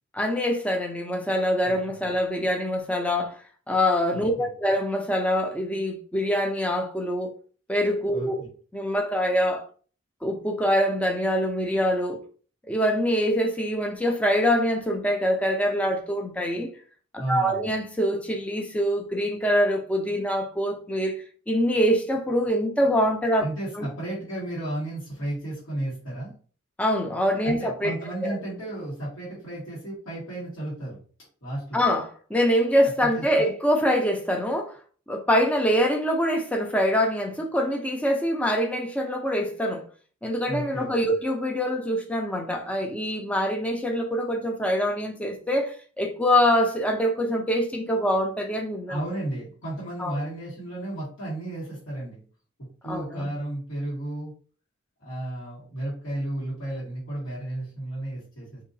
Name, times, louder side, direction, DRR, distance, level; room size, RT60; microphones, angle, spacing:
voice 1, 0.1-7.3 7.7-8.4 8.7-9.7 10.2-12.2 12.7-16.7 17.3-23.4 23.7-23.9 26.8-28.4 31.7-34.8 35.1-39.9 40.2-49.0 50.0-50.2 52.8-53.3, equal, 5° left, 0.4 m, -24 dB
voice 2, 1.6-2.0 4.1-4.5 8.1-8.5 17.2-17.6 23.4-26.3 27.4-31.0 31.4-31.8 33.1-33.5 40.5-40.9 48.9-52.2 52.8-54.3 55.0-58.6, right 1 dB, 75° left, 1.5 m, -33 dB
3.8 x 2.8 x 2.6 m
head